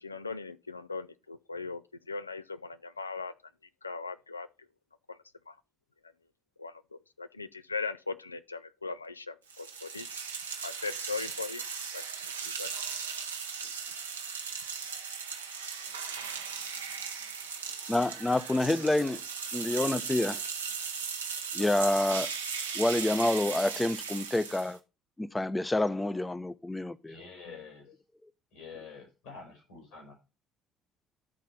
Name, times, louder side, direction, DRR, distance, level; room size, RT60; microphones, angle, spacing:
voice 1, 0.0-1.8 2.1-3.3 3.8-4.5 5.1-5.2 5.5-5.6 6.6-10.1 10.6-11.6 11.9-12.7, left 4 dB, 85° left, 0.3 m, -39 dB
sound 1, 9.5-24.8, right 6 dB, 80° right, 0.8 m, -37 dB
voice 2, 17.9-19.2 19.5-20.4 21.5-22.3 22.7-24.8 25.2-27.2, left 1 dB, 15° left, 0.7 m, -28 dB
voice 3, 27.1-28.0 28.5-30.1, left 5 dB, 65° left, 4.2 m, -47 dB
12.5 x 4.2 x 4.2 m
figure-of-eight pair, 50°, 0 cm